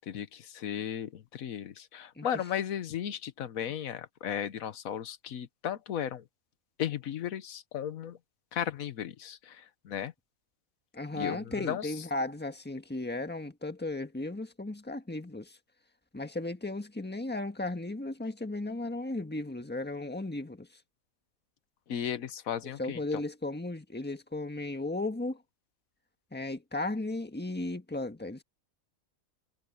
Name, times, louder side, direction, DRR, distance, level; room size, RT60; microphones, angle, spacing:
voice 1, 0.0-6.2 6.8-8.2 8.5-10.1 11.1-12.0 21.9-23.2, left 9 dB, 85° left, 1.3 m, -35 dB
voice 2, 10.9-15.6 16.1-20.8 22.8-25.4 26.3-28.4, left 2 dB, 5° left, 1.4 m, -35 dB
omnidirectional pair, 1.4 m